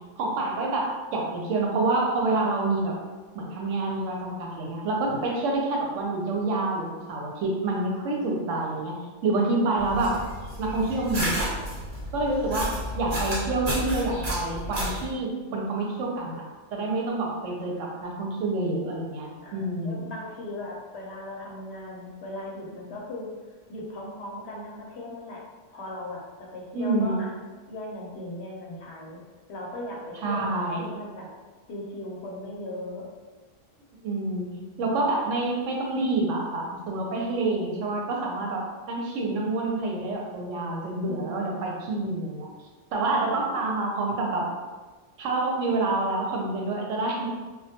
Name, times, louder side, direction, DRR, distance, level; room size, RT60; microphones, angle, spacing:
voice 1, 0.2-2.9 3.3-10.2 10.6-11.6 12.1-16.4 16.7-20.1 26.7-27.2 30.2-30.9 34.0-34.5 34.8-42.5 42.9-44.5 45.2-47.3, right 2 dB, 90° right, -1 dB, 0.9 m, -27 dB
sound 1, 9.8-15.1, equal, 55° right, 1.1 m, -32 dB
voice 2, 19.4-23.3 23.7-25.4 25.7-27.3 27.7-29.2 29.5-31.3 31.7-33.1 41.0-41.6 43.0-43.5, left 1 dB, 65° left, -3 dB, 0.8 m, -38 dB
2.2 x 2.2 x 2.7 m, 1.3 s
omnidirectional pair, 1.2 m